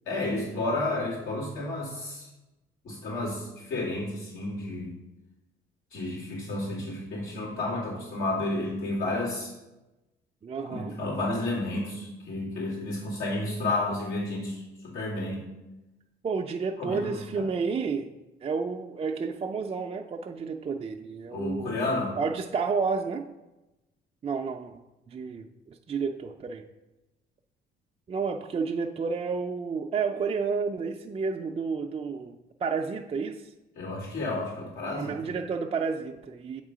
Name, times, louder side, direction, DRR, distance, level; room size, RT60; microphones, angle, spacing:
voice 1, 0.1-2.3 2.8-5.0 5.9-9.5 10.7-15.4 16.8-17.5 21.3-22.2 33.8-35.2, left 2 dB, 90° left, -7 dB, 2.5 m, -31 dB
voice 2, 10.4-11.0 16.2-18.1 18.4-21.8 22.2-23.2 24.2-24.8 25.1-26.6 28.1-33.5 34.9-36.6, right 5 dB, 30° right, 3 dB, 0.4 m, -31 dB
7.1 x 3.6 x 4.9 m, 1.0 s
cardioid pair, 90°, 20 cm